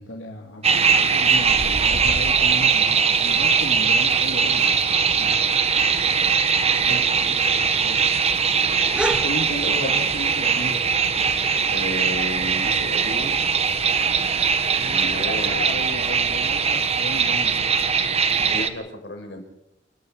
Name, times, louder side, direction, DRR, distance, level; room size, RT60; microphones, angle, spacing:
voice 1, 0.0-5.5 6.3-8.1 9.1-10.8 14.8-17.9 18.3-18.5, left 1 dB, 85° left, 0 dB, 2.7 m, -35 dB
sound 1, 0.6-18.7, right 6 dB, 35° right, 1.4 m, -21 dB
sound 2, 8.4-17.0, right 1 dB, 5° right, 1.4 m, -37 dB
voice 2, 8.6-8.9 9.6-10.1 11.7-13.3 14.9-15.6 18.4-19.4, left 1 dB, 65° left, 3 dB, 5.6 m, -33 dB
29.5 x 10.5 x 8.8 m, 0.82 s
head